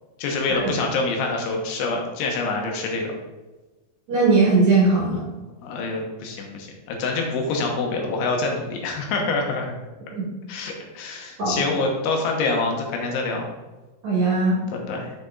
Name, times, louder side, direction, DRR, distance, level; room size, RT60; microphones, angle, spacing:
voice 1, 0.2-3.1 5.6-9.7 10.5-13.5 14.9-15.1, left 3 dB, 80° left, 1 dB, 3.5 m, -26 dB
voice 2, 4.1-5.3 10.1-10.3 11.4-11.6 14.0-14.6, right 3 dB, 50° right, -6 dB, 2.6 m, -19 dB
7.4 x 6.1 x 4.0 m, 1.2 s
omnidirectional pair, 5.3 m